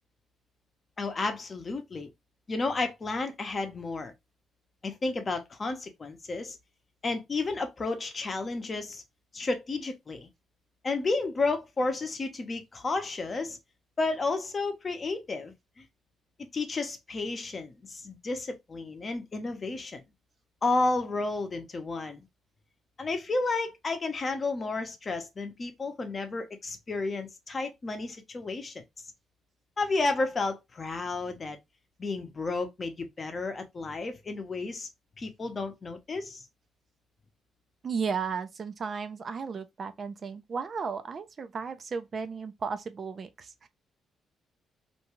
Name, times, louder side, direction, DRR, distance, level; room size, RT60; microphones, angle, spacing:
voice 1, 1.0-2.1 2.5-4.1 4.8-6.6 7.0-9.0 9.3-10.3 10.8-13.6 14.0-15.5 16.5-20.0 20.6-22.3 23.0-28.7 29.8-31.6 32.0-34.9 35.2-36.4, left 3 dB, 35° left, 0.7 m, -32 dB
voice 2, 37.8-43.7, right 5 dB, 45° right, 0.4 m, -34 dB
2.6 x 2.3 x 2.9 m
cardioid pair, 90°, 0 cm